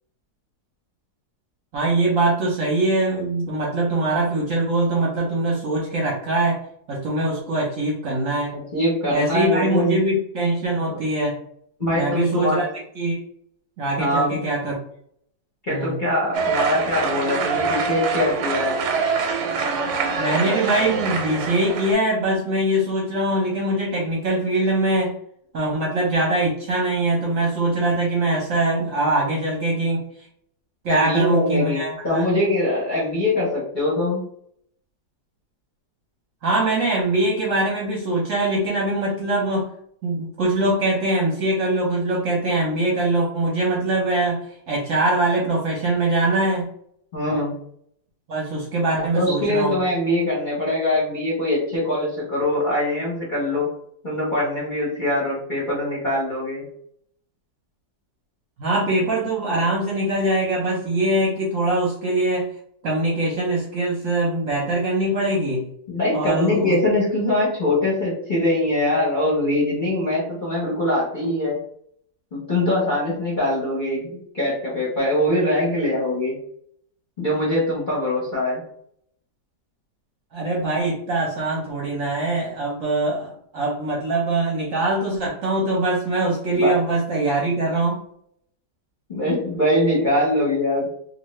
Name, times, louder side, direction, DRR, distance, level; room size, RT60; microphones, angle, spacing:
voice 1, 1.7-6.6 6.9-8.5 9.1-11.4 11.9-12.7 13.0-13.2 13.8-14.8 15.7-16.0 20.2-25.1 25.5-30.3 30.8-32.3 36.4-39.7 40.0-46.7 48.3-49.8 58.6-62.5 62.8-65.7 66.1-66.7 80.3-88.0, right 2 dB, 55° right, -3 dB, 1.0 m, -22 dB
voice 2, 8.5-10.0 11.8-12.6 14.0-14.4 15.6-18.8 30.9-34.3 47.1-47.6 49.1-53.7 54.0-56.6 65.9-71.6 72.3-76.4 77.2-78.6 86.5-86.7 89.1-90.9, left 1 dB, 35° left, -7 dB, 0.8 m, -22 dB
sound 1, 16.3-21.9, right 5 dB, 90° right, 1.3 m, -24 dB
2.7 x 2.6 x 3.1 m, 0.67 s
omnidirectional pair, 2.0 m